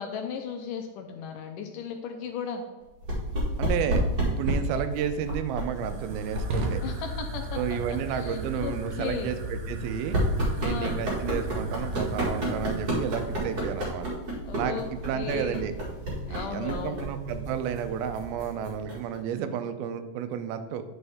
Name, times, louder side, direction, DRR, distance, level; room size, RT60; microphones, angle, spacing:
voice 1, 0.0-2.7 6.8-9.3 10.6-11.0 14.5-15.7 16.3-17.1, left 7 dB, 80° left, 5 dB, 2.0 m, -36 dB
sound 1, 3.0-19.2, right 1 dB, 35° right, 1.7 m, -32 dB
voice 2, 3.6-6.8 7.6-10.2 10.6-14.1 14.5-15.7 16.3-20.8, right 8 dB, 90° right, 9 dB, 2.6 m, -32 dB
Fire, 4.9-13.9, right 2 dB, 65° right, 1.7 m, -36 dB
9.6 x 5.4 x 3.5 m, 1.2 s
omnidirectional pair, 4.2 m